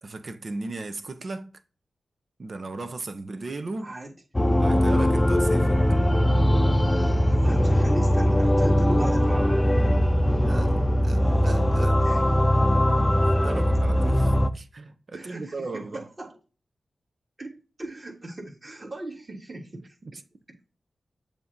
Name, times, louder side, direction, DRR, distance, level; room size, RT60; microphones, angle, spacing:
voice 1, 0.0-1.5 2.4-3.9 4.6-5.8 10.4-10.8 11.0-12.0 12.6-16.1 19.7-20.2, right 3 dB, 55° right, 0.9 m, -37 dB
voice 2, 3.8-4.1 7.2-9.7 12.0-12.2 15.1-16.4 17.4-20.0, right 1 dB, 40° right, 3.4 m, -37 dB
sound 1, 4.3-14.5, equal, 25° left, 0.6 m, -21 dB
7.4 x 2.9 x 5.2 m
cardioid pair, 40°, 0 cm